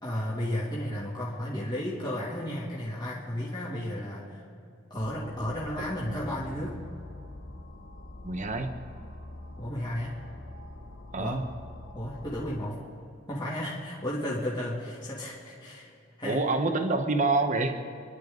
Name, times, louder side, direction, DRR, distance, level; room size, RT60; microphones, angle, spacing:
voice 1, 0.0-4.4 4.9-6.7 9.6-10.2 11.2-11.4 11.9-12.8 13.3-15.9 16.2-16.4, left 1 dB, 25° left, -7 dB, 2.8 m, -33 dB
sound 1, 5.0-12.6, left 1 dB, 80° left, 1.3 m, -45 dB
voice 2, 8.2-8.8 11.1-11.5 16.2-17.8, right 3 dB, 40° right, 6 dB, 1.2 m, -27 dB
30.0 x 11.5 x 4.0 m, 2.6 s
head